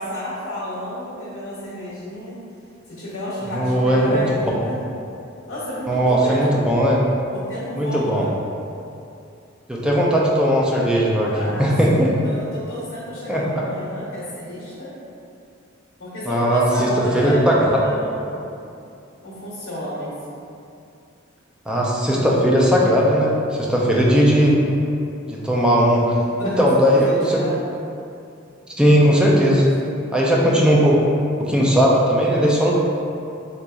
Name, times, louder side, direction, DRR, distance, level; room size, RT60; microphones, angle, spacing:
voice 1, 0.0-2.4 2.9-4.8 5.5-6.5 7.3-8.3 11.3-14.9 16.0-18.6 19.2-20.1 26.3-27.6, equal, 60° left, -9 dB, 0.9 m, -31 dB
voice 2, 3.5-4.2 4.5-4.7 5.9-7.0 7.7-8.3 9.7-12.1 13.3-13.6 16.3-18.0 21.7-24.6 25.3-26.2 26.6-27.4 28.8-29.6 30.1-31.0 31.4-32.7, equal, 5° right, -4 dB, 0.4 m, -18 dB
3.9 x 2.8 x 2.4 m, 2.6 s
head